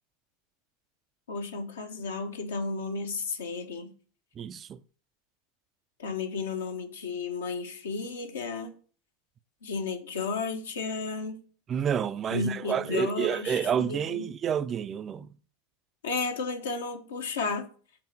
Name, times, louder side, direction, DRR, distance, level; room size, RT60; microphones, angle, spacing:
voice 1, 1.3-3.9 6.0-8.7 9.6-11.4 12.3-14.3 16.0-17.7, left 4 dB, 80° left, 1.1 m, -33 dB
voice 2, 4.4-4.8 11.7-15.3, right 8 dB, 35° right, 0.4 m, -29 dB
5.9 x 4.2 x 5.9 m
hypercardioid pair, 85°, 0 cm